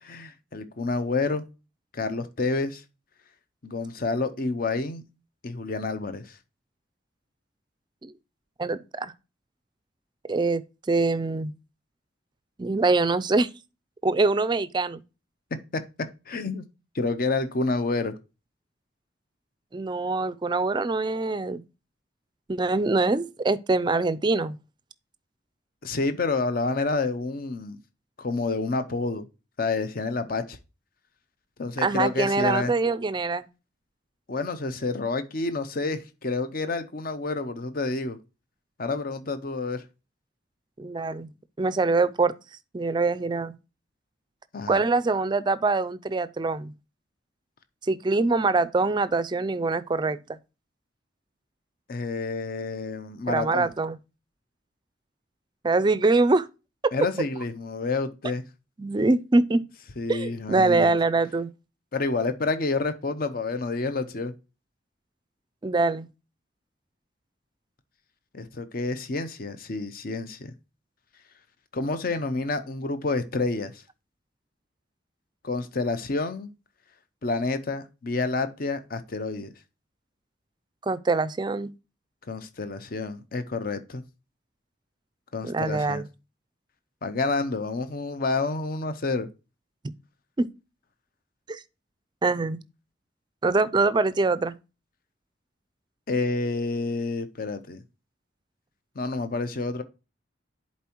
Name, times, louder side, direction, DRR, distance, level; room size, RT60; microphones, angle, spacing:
voice 1, 0.0-1.4 1.9-2.8 3.6-5.0 5.4-6.4 16.3-16.7 16.9-18.1 25.8-27.8 28.2-29.3 29.6-30.6 31.6-32.7 34.3-38.2 38.8-39.8 44.5-44.8 51.9-53.7 56.9-58.4 60.0-60.9 61.9-64.3 68.3-70.5 71.7-73.8 75.4-76.5 77.2-79.5 82.3-84.0 85.3-86.0 87.0-89.3 96.1-97.8 99.0-99.8, left 3 dB, 50° left, 0.7 m, -29 dB
voice 2, 8.6-9.1 10.3-11.5 12.6-13.5 14.0-15.0 19.7-21.6 22.5-24.6 31.8-33.5 40.8-41.3 41.6-42.3 42.7-43.6 44.7-46.7 47.9-50.4 53.3-54.0 55.6-56.5 58.8-59.6 60.1-61.5 65.6-66.1 80.8-81.7 85.4-86.1 90.4-90.5 91.5-91.6 92.2-92.6 93.4-94.5, right 3 dB, 25° right, 0.4 m, -24 dB
10.5 x 4.3 x 2.9 m
head